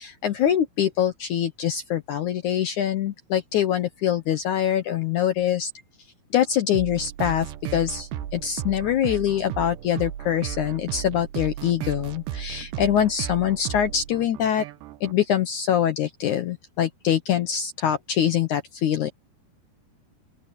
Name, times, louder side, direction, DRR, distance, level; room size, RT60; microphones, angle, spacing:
voice 1, 0.0-5.7 6.3-14.7 15.0-19.1, left 10 dB, 80° left, 1.8 m, -24 dB
sound 1, 6.7-15.1, right 11 dB, 85° right, 3.3 m, -35 dB
open air
omnidirectional pair, 4.8 m